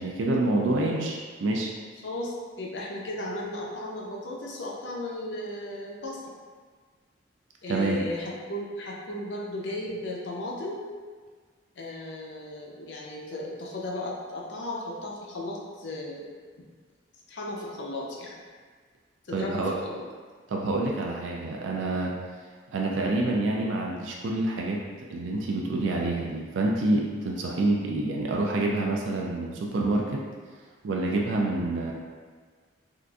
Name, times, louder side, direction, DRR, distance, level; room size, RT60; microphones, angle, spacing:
voice 1, 0.0-1.7 7.7-8.1 19.3-19.7 20.5-22.1 22.7-24.8 25.1-30.2 30.8-31.9, right 2 dB, 80° right, -1 dB, 0.4 m, -27 dB
voice 2, 2.0-6.2 7.6-10.8 11.8-16.3 17.3-18.4 19.2-20.0, left 1 dB, 65° left, -3 dB, 0.6 m, -35 dB
3.8 x 2.5 x 2.3 m, 1.5 s
head